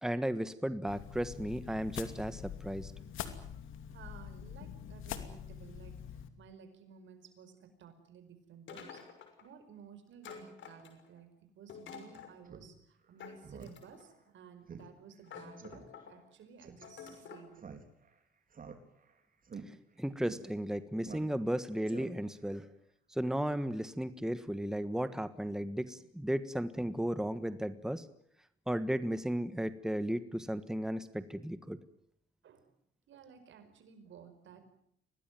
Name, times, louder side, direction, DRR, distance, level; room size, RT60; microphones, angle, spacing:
voice 1, 0.0-2.9 20.0-22.7 23.1-28.1 28.7-31.8, equal, 5° right, 12 dB, 1.4 m, -35 dB
sound 1, 0.9-6.3, left 9 dB, 85° left, 2.6 m, -44 dB
voice 2, 3.9-9.0 9.4-17.8 26.3-26.4 32.4-32.7 33.1-34.6, right 7 dB, 70° right, 9 dB, 5.0 m, -55 dB
sound 2, 8.7-9.5 10.2-11.2 11.7-12.4 13.2-14.1 14.8-14.9 15.3-16.1 16.8-17.5, left 7 dB, 70° left, 6.0 m, -49 dB
Speech synthesizer, 12.5-12.7 13.0-13.1 13.4-13.8 14.1-14.2 14.7-14.9 15.2-15.3 15.6-15.8 16.6-16.9 17.6-18.1 18.5-19.1 19.4-19.6 20.3-20.4 21.0-21.5 21.9-22.4, right 5 dB, 45° right, 4.0 m, -47 dB
25.0 x 19.0 x 9.2 m, 0.70 s
cardioid pair, 90°, 20 cm